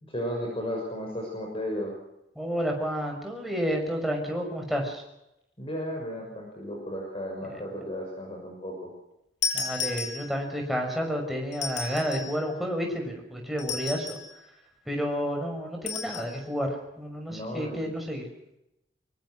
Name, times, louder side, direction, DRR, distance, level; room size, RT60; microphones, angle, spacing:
voice 1, 0.0-1.9 5.6-8.9 17.3-17.9, equal, 30° left, 0 dB, 6.4 m, -34 dB
voice 2, 2.4-5.0 7.5-7.6 9.5-14.2 14.9-18.3, equal, ahead, 1 dB, 6.0 m, -30 dB
sound 1, 9.4-10.6 11.5-12.4 13.6-14.3 15.9-16.3, left 5 dB, 85° left, 6.6 m, -33 dB
24.5 x 24.0 x 6.4 m, 0.86 s
head